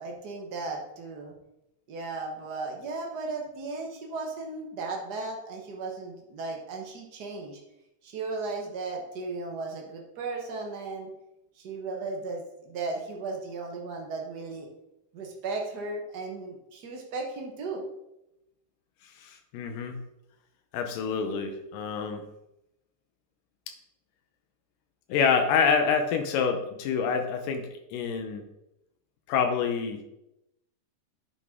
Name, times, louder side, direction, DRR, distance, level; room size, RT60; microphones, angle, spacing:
voice 1, 0.0-1.3 1.9-7.6 8.0-11.1 11.6-14.7 15.1-17.8, right 3 dB, 75° right, 1 dB, 0.9 m, -36 dB
voice 2, 19.2-20.0 20.7-22.2 25.1-28.5 29.3-30.0, left 6 dB, 85° left, 5 dB, 2.5 m, -27 dB
9.8 x 6.1 x 3.7 m, 0.88 s
omnidirectional pair, 3.7 m